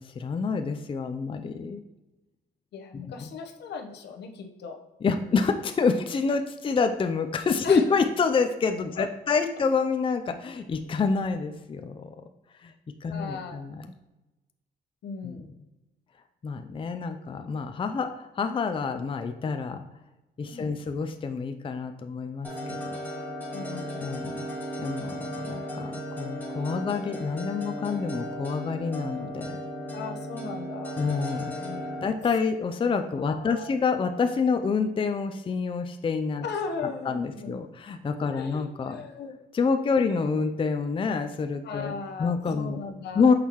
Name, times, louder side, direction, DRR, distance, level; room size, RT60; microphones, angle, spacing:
voice 1, 0.0-1.8 2.9-3.3 5.0-12.1 12.6-12.7 13.0-13.8 15.2-15.5 16.4-19.8 20.4-23.0 24.0-24.4 24.8-29.6 31.0-31.5 32.0-36.4 37.1-39.0 39.5-41.9 42.2-42.8 43.2-43.3, left 5 dB, 30° left, 7 dB, 0.5 m, -27 dB
voice 2, 2.7-4.8 5.1-5.3 7.6-7.8 9.0-9.3 13.1-13.6 15.0-15.5 20.5-20.8 23.5-24.1 29.9-31.1 31.6-31.9 33.2-33.8 36.4-37.5 38.3-39.3 41.6-43.3, left 5 dB, 75° left, 4 dB, 1.0 m, -37 dB
sound 1, 22.4-32.1, equal, 10° left, 2.1 m, -36 dB
6.5 x 5.4 x 3.0 m, 1.0 s
cardioid pair, 85°, 18 cm